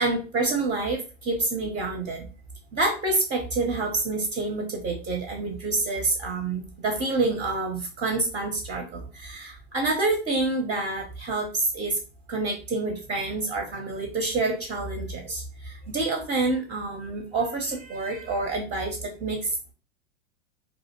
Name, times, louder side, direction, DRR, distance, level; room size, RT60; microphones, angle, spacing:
voice 1, 0.0-2.3 2.7-11.9 12.3-19.4, right 3 dB, 20° right, 1 dB, 0.5 m, -27 dB
2.5 x 2.1 x 2.8 m, 0.34 s
hypercardioid pair, 100°, 40 cm